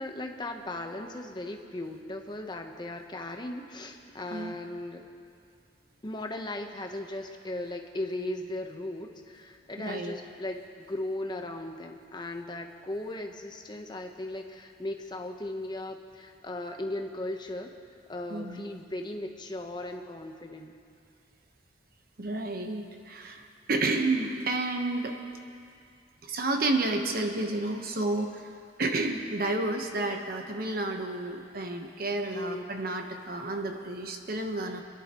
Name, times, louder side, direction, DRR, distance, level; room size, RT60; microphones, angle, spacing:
voice 1, 0.0-5.1 6.0-17.7 18.1-20.7 32.3-32.6, left 1 dB, 25° left, 4 dB, 0.9 m, -37 dB
voice 2, 9.8-10.1 18.3-18.8 22.2-23.4 23.7-25.1 26.2-28.5 28.8-34.8, right 2 dB, 55° right, 4 dB, 1.1 m, -30 dB
27.5 x 11.0 x 3.0 m, 2.4 s
head